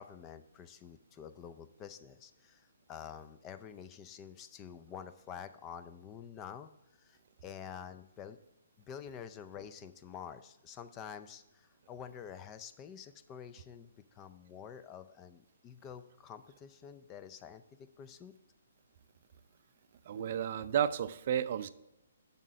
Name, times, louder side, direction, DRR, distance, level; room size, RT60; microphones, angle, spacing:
voice 1, 0.0-6.7 7.0-8.4 8.8-17.6 18.0-18.3, left 8 dB, 20° left, 12 dB, 0.5 m, -48 dB
voice 2, 20.1-21.7, right 9 dB, 50° right, 14 dB, 0.4 m, -32 dB
7.3 x 5.7 x 4.9 m, 0.92 s
hypercardioid pair, 140°, 0 cm